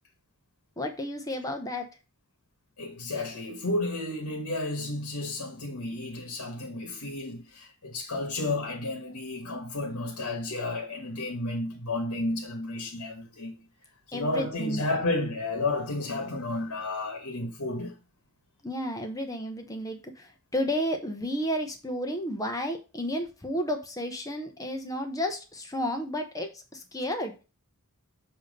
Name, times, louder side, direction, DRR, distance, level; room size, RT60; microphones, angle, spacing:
voice 1, 0.8-1.9 14.1-14.9 18.6-27.3, equal, 15° left, 0.7 m, -32 dB
voice 2, 2.8-13.5 14.1-17.9, left 2 dB, 75° left, 1.2 m, -32 dB
6.9 x 2.8 x 5.2 m
head